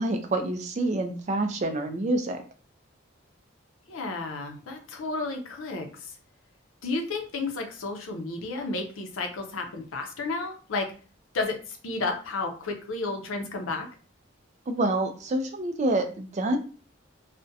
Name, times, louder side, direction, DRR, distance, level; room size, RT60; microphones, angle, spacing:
voice 1, 0.0-2.4 14.7-16.6, right 2 dB, 35° right, 6 dB, 0.3 m, -27 dB
voice 2, 3.9-6.2 6.8-10.9 11.3-13.9, left 3 dB, 90° left, 4 dB, 0.6 m, -32 dB
2.4 x 2.1 x 2.6 m, 0.38 s
head